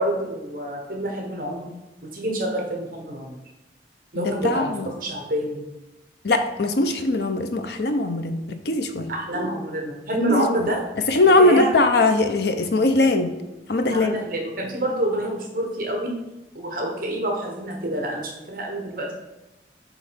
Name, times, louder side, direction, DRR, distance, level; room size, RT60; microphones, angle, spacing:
voice 1, 0.0-1.7 2.1-3.3 4.1-5.6 9.1-10.8 11.4-11.7 13.9-16.1 16.5-19.1, right 1 dB, 50° right, 0 dB, 1.1 m, -27 dB
voice 2, 4.1-4.9 6.2-9.1 10.3-10.7 11.1-13.4 13.7-14.2, left 2 dB, 65° left, 7 dB, 0.7 m, -21 dB
7.9 x 3.2 x 5.1 m, 1.0 s
head